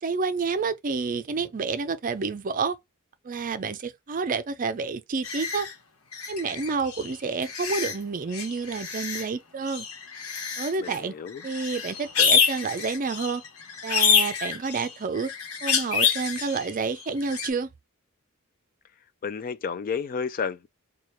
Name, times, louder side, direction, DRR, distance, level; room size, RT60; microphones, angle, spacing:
voice 1, 0.0-2.8 3.2-5.7 6.3-9.9 10.6-11.1 11.4-13.4 13.8-15.3 15.6-17.7, right 4 dB, 40° right, 0.5 m, -29 dB
sound 1, 5.2-5.7 6.1-7.1 7.4-8.0 8.3-9.3 9.6-11.0 11.3-16.7 17.0-17.5, left 6 dB, 85° left, 1.1 m, -27 dB
voice 2, 10.8-11.4 19.2-20.7, left 6 dB, 40° left, 0.3 m, -31 dB
3.2 x 2.3 x 4.3 m
head